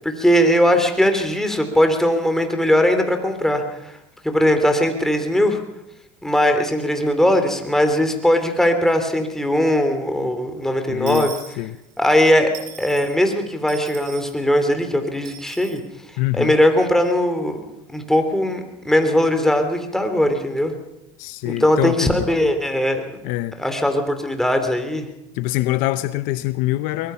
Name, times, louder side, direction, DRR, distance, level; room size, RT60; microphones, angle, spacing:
voice 1, 0.0-4.0 4.2-5.6 6.2-11.4 12.0-12.5 12.8-15.8 16.3-17.6 17.9-20.7 21.4-23.0 23.6-25.0, equal, 5° left, 3.2 m, -19 dB
voice 2, 10.9-11.3 11.6-11.8 16.2-16.5 21.2-22.1 23.2-23.5 25.3-27.1, left 17 dB, 65° left, 0.9 m, -24 dB
Dishes pots and pans / Coin (dropping), 11.1-12.2 12.5-13.1 13.7-14.4 15.2-15.8, right 9 dB, 65° right, 7.4 m, -39 dB
23.0 x 21.0 x 5.7 m
supercardioid pair, 115°, 15 cm